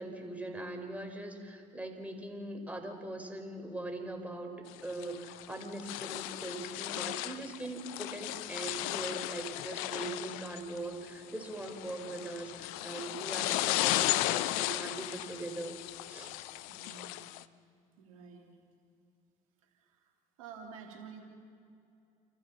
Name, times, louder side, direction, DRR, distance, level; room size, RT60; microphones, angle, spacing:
voice 1, 0.0-15.8 16.1-16.3, right 2 dB, 10° right, 3 dB, 4.6 m, -41 dB
sound 1, 4.7-17.4, left 16 dB, 80° left, 0.6 m, -35 dB
voice 2, 16.7-17.3 18.0-18.5 19.6-20.1 20.4-21.2, right 6 dB, 85° right, -1 dB, 3.1 m, -50 dB
29.5 x 14.5 x 7.2 m, 2.5 s
hypercardioid pair, 55°, 18 cm